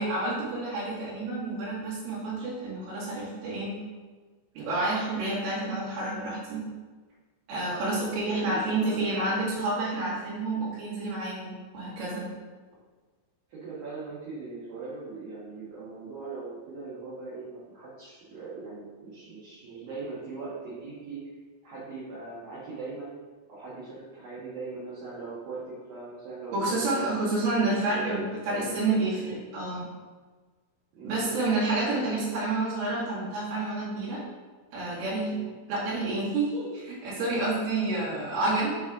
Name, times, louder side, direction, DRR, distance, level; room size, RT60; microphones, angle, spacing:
voice 1, 0.0-3.8 4.6-6.7 7.5-12.3 26.5-29.9 31.0-34.2 34.7-35.3 35.7-38.7, right 2 dB, 80° right, -9 dB, 4.6 m, -29 dB
voice 2, 8.2-9.3 13.5-21.2 21.6-23.2 23.5-27.2 27.5-28.8 30.9-31.4 35.3-35.5, right 4 dB, 65° right, -10 dB, 2.5 m, -40 dB
8.7 x 3.3 x 3.6 m, 1.4 s
omnidirectional pair, 5.6 m